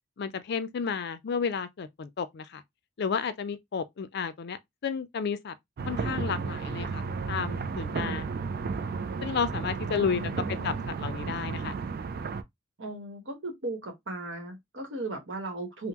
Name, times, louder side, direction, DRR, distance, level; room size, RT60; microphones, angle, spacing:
voice 1, 0.2-2.6 3.0-5.6 5.9-8.2 9.2-10.3 10.6-11.7, left 6 dB, 60° left, 0.4 m, -32 dB
sound 1, 5.8-12.4, right 4 dB, 50° right, 0.3 m, -33 dB
voice 2, 7.9-8.2 9.9-10.8 12.8-15.9, right 2 dB, 70° right, 1.1 m, -37 dB
3.5 x 2.0 x 2.9 m
head